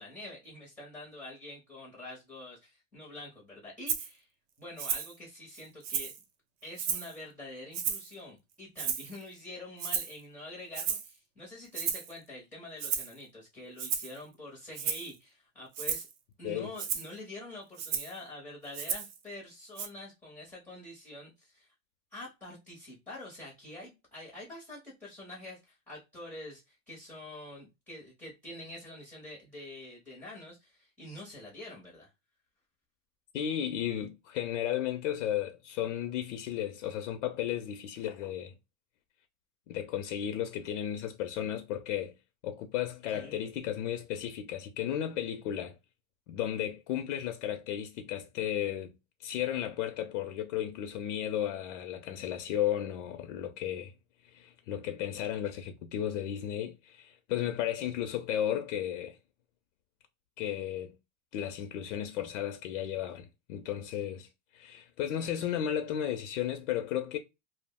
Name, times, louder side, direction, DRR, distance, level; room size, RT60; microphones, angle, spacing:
voice 1, 0.0-4.3 4.6-6.1 6.6-16.1 16.4-21.7 22.1-32.1 43.1-43.5, left 1 dB, 5° left, 0.5 m, -46 dB
Rattle (instrument), 3.9-4.1 4.8-5.1 5.5-6.2 6.8-7.1 7.7-8.1 8.8-9.2 9.8-10.2 10.7-11.1 11.7-12.1 12.8-13.1 13.8-14.2 14.7-15.1 15.7-16.1 16.8-17.1 17.8-18.2 18.7-19.2 19.8-19.9, right 7 dB, 55° right, 0.7 m, -33 dB
voice 2, 16.4-16.7 33.3-38.5 39.7-42.1 42.4-45.8 46.3-48.9 49.2-53.9 54.3-59.2 60.4-60.9 61.3-64.3 64.5-67.2, left 10 dB, 55° left, 0.5 m, -34 dB
2.3 x 2.0 x 3.5 m
supercardioid pair, 160°, 45 cm